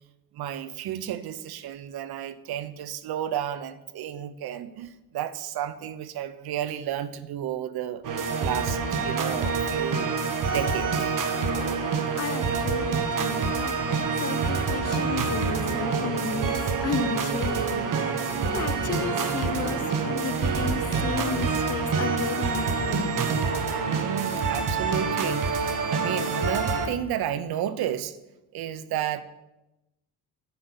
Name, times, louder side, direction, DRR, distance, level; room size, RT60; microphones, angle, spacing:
voice 1, 0.3-8.0 8.4-10.1 10.5-11.2 23.8-28.2 28.5-29.2, right 10 dB, 75° right, 14 dB, 0.8 m, -32 dB
sound 1, 8.0-26.9, right 5 dB, 55° right, 1.3 m, -27 dB
voice 2, 12.1-18.1 18.4-23.3, left 5 dB, 40° left, 11 dB, 0.8 m, -33 dB
10.0 x 5.5 x 8.0 m, 0.96 s
cardioid pair, 125°, 38 cm